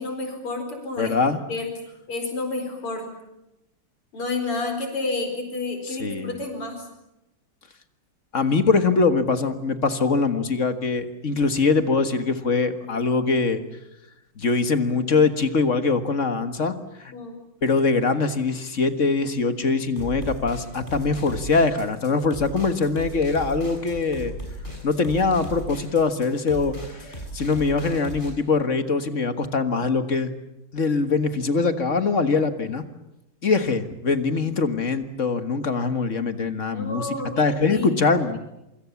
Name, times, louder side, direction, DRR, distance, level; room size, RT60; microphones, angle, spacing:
voice 1, 0.0-1.7 2.1-3.1 4.1-6.9 17.1-17.4 36.7-37.9, left 3 dB, 90° left, 5 dB, 5.5 m, -30 dB
voice 2, 1.0-1.4 6.0-6.3 8.3-13.6 14.4-16.7 17.0-17.1 17.6-24.3 24.8-30.3 30.7-32.9 33.4-38.4, left 4 dB, 35° left, 9 dB, 1.8 m, -23 dB
sound 1, 20.0-28.3, right 1 dB, 20° left, 6.9 m, -36 dB
27.0 x 25.5 x 7.2 m, 0.89 s
omnidirectional pair, 2.4 m